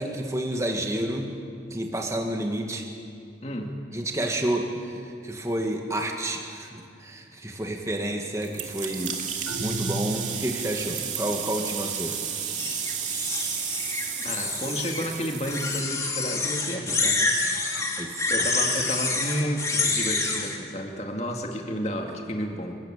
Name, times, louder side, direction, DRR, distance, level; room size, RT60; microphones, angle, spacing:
voice 1, 0.0-1.3 1.7-2.9 3.9-9.2 9.6-12.2 17.6-18.5, right 1 dB, 15° right, 2 dB, 1.9 m, -30 dB
voice 2, 3.4-3.7 14.2-17.3 18.3-22.8, equal, 40° left, 2 dB, 2.2 m, -31 dB
sound 1, 8.4-15.8, right 7 dB, 45° right, 2.4 m, -33 dB
sound 2, 9.5-10.9, right 3 dB, 90° right, 0.8 m, -35 dB
sound 3, 12.6-15.1 15.5-20.6, left 3 dB, 20° left, 2.3 m, -27 dB
27.5 x 15.0 x 9.0 m, 2.4 s
head